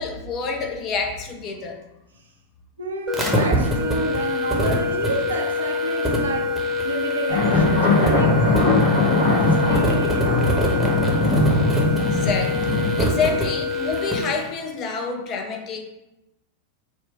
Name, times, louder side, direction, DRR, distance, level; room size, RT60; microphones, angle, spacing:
voice 1, 0.0-1.8 11.9-15.9, left 5 dB, 35° left, 3 dB, 0.6 m, -28 dB
voice 2, 2.8-6.6 6.8-10.8, right 3 dB, 70° right, 1 dB, 0.7 m, -31 dB
sound 1, 3.1-14.4, left 2 dB, 5° right, 1.0 m, -24 dB
sound 2, 7.3-13.0, left 2 dB, 60° left, 1.6 m, -20 dB
4.4 x 2.3 x 4.7 m, 0.94 s
figure-of-eight pair, 90°, 0 cm